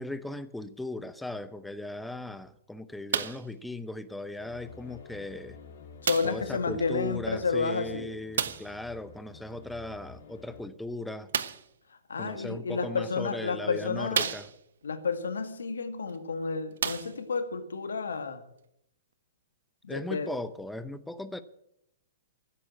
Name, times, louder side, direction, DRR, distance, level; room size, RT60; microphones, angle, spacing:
voice 1, 0.0-5.6 6.2-11.3 12.2-14.5 19.9-21.4, left 2 dB, 5° left, 0.8 m, -38 dB
sound 1, 3.1-3.5 4.4-4.5 6.0-6.5 8.3-8.8 11.3-11.7 12.7-12.8 13.4-13.5 14.1-14.8 16.1-16.2 16.7-17.5 18.3-18.4, right 8 dB, 70° right, 1.1 m, -31 dB
sound 2, 4.4-10.6, left 5 dB, 60° left, 3.3 m, -51 dB
voice 2, 6.0-8.1 11.9-14.3 14.8-18.4 19.8-20.3, left 4 dB, 80° left, 1.8 m, -31 dB
13.0 x 10.5 x 8.7 m
hypercardioid pair, 120°, 0 cm